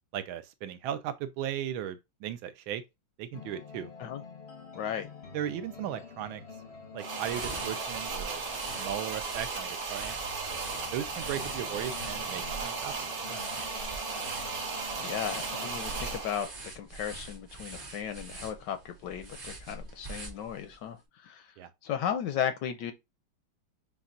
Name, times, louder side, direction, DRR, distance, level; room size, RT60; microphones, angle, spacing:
voice 1, 0.1-2.8 3.2-3.9 5.3-6.4 6.9-8.4 8.7-10.2 10.9-13.4 21.6-21.7, right 10 dB, 85° right, 1.4 m, -36 dB
sound 1, 3.3-16.1, left 5 dB, 55° left, 0.7 m, -48 dB
voice 2, 4.8-5.1 15.0-16.5 16.8-21.5 21.8-22.9, left 9 dB, 75° left, 1.1 m, -35 dB
sound 2, 7.0-16.6, right 4 dB, 55° right, 1.3 m, -36 dB
sound 3, 7.1-20.8, right 3 dB, 35° right, 1.0 m, -45 dB
6.8 x 2.4 x 2.5 m
omnidirectional pair, 2.2 m